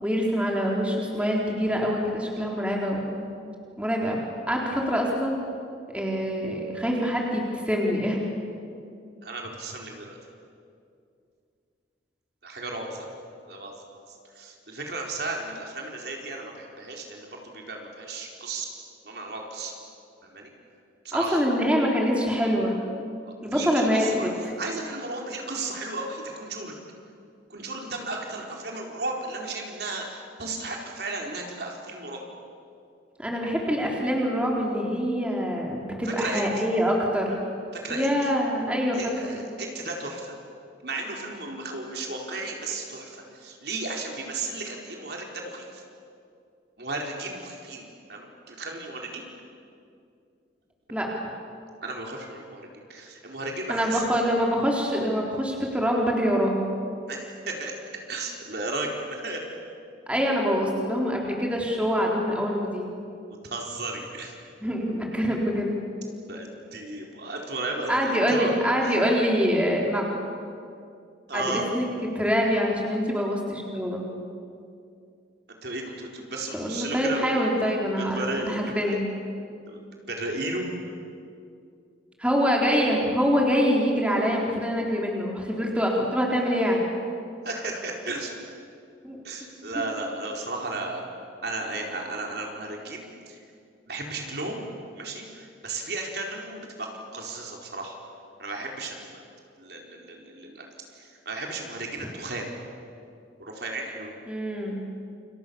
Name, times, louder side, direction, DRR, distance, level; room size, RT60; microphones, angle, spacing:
voice 1, 0.0-3.3 3.8-5.4 5.9-8.2 21.1-22.8 23.4-24.3 33.2-37.3 37.9-39.0 39.3-39.4 50.9-51.1 53.7-56.7 60.1-62.9 64.6-65.7 67.9-70.0 71.3-71.9 72.1-74.0 76.5-79.1 82.2-86.8 89.0-89.2 89.7-89.8 102.0-102.1 104.3-104.8, equal, 5° right, -2 dB, 4.0 m, -25 dB
voice 2, 9.2-10.2 12.4-13.1 13.5-13.7 14.1-18.7 19.0-19.7 20.2-20.5 21.0-21.4 23.2-24.3 24.6-26.8 27.5-32.2 36.0-36.4 37.8-38.1 38.9-40.4 40.8-45.8 46.8-49.2 51.8-52.6 52.9-54.0 57.1-59.5 63.4-64.4 66.3-68.5 68.8-68.9 71.3-71.6 75.5-77.3 77.9-78.9 79.7-80.6 87.4-88.3 89.2-91.0 91.4-93.4 93.9-94.6 95.0-97.9 98.4-99.2 99.6-100.7 100.9-102.5 103.4-104.1, right 2 dB, 60° right, 0 dB, 4.6 m, -34 dB
29.5 x 28.0 x 7.1 m, 2.4 s
head